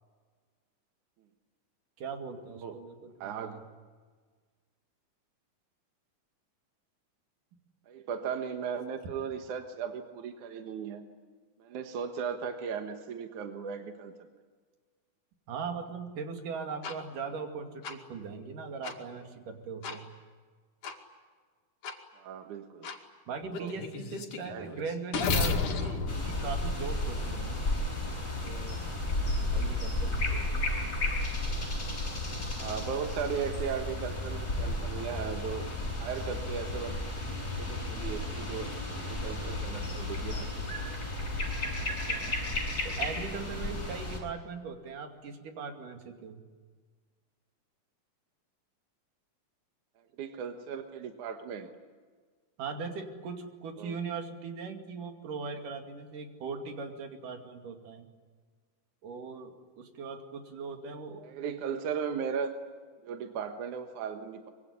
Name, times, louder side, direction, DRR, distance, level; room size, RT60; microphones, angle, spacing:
voice 1, 2.0-3.6 15.5-20.0 23.3-27.7 28.4-28.8 29.5-30.7 41.8-42.4 42.8-46.4 52.6-58.1 59.0-61.2, right 5 dB, 90° right, 5 dB, 4.0 m, -40 dB
voice 2, 3.2-3.6 7.9-11.0 11.6-14.2 22.2-22.9 23.6-23.7 24.5-24.8 32.6-35.6 36.0-37.0 37.5-38.7 39.0-40.8 50.2-51.7 53.8-53.9 61.2-62.5 63.0-64.5, right 7 dB, 75° right, 6 dB, 2.8 m, -37 dB
sound 1, 16.8-17.0 17.8-17.9 18.8-19.0 19.8-20.0 20.8-21.0 21.8-22.0 22.8-23.0 23.5-27.4, left 4 dB, 75° left, 3.8 m, -33 dB
sound 2, 26.1-44.2, left 2 dB, 25° left, 7.2 m, -33 dB
24.5 x 23.5 x 9.8 m, 1.5 s
omnidirectional pair, 3.6 m